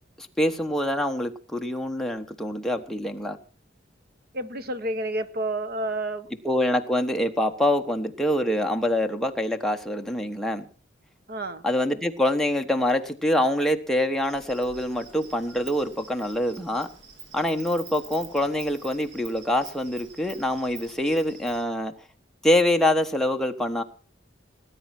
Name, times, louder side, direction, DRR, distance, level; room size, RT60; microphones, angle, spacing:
voice 1, 0.2-3.4 6.4-10.7 11.6-16.9 17.3-21.9 22.4-23.8, left 1 dB, ahead, 3 dB, 1.2 m, -25 dB
voice 2, 4.3-6.3 11.3-11.6, right 1 dB, 50° right, 12 dB, 1.2 m, -30 dB
Insect, 14.2-21.6, right 5 dB, 70° right, 3.2 m, -46 dB
18.5 x 9.5 x 6.1 m, 0.39 s
head